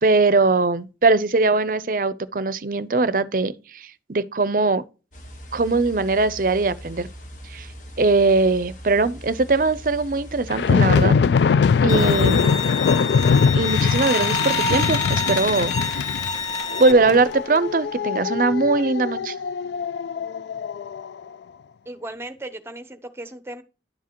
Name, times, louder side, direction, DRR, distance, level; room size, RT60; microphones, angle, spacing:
voice 1, 0.0-4.8 5.5-7.1 7.5-7.7 8.0-11.2 11.8-12.6 13.5-16.0 16.8-19.3, right 3 dB, 50° right, 0.6 m, -21 dB
sound 1, 5.1-10.8, equal, 45° left, 1.4 m, -40 dB
sound 2, 10.5-21.1, left 6 dB, 75° left, 0.3 m, -22 dB
Bowed string instrument, 11.9-16.9, left 4 dB, 20° left, 0.7 m, -27 dB
voice 2, 21.9-23.6, right 1 dB, 15° right, 0.8 m, -36 dB
11.0 x 7.2 x 3.0 m
head